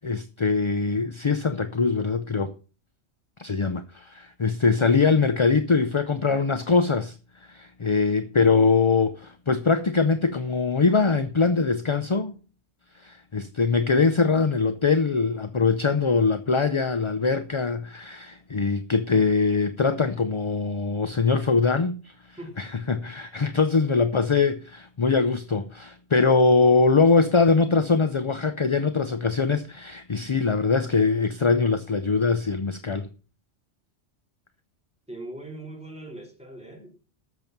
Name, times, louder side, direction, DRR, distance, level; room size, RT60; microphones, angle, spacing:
voice 1, 0.0-2.5 3.4-7.2 7.5-12.3 13.0-22.1 22.6-33.1, left 4 dB, 35° left, 0.5 m, -22 dB
voice 2, 22.4-22.7 35.1-36.9, right 1 dB, 5° right, 3.8 m, -40 dB
12.5 x 7.2 x 5.9 m
omnidirectional pair, 1.2 m